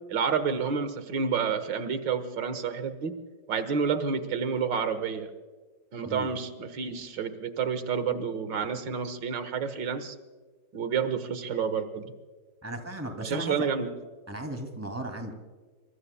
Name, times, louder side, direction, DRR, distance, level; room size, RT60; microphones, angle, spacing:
voice 1, 0.1-3.1 3.5-5.3 5.9-10.2 10.7-12.1 13.2-13.9, right 6 dB, 90° right, 10 dB, 2.0 m, -29 dB
voice 2, 12.6-13.6 14.3-15.3, right 1 dB, 10° right, 5 dB, 2.5 m, -36 dB
24.5 x 24.0 x 2.3 m, 1.4 s
omnidirectional pair, 1.9 m